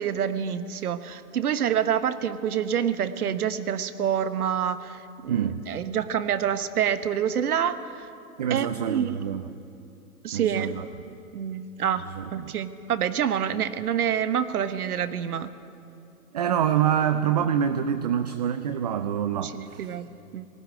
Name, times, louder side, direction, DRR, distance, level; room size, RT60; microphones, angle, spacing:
voice 1, 0.0-8.1 8.5-9.2 10.2-10.7 11.3-15.5 19.4-20.5, right 8 dB, 70° right, 12 dB, 1.3 m, -27 dB
voice 2, 5.3-5.6 8.4-9.4 10.3-10.9 12.2-12.5 16.3-19.9, right 9 dB, 30° right, 9 dB, 0.4 m, -26 dB
18.5 x 16.0 x 9.6 m, 2.6 s
hypercardioid pair, 135°, 47 cm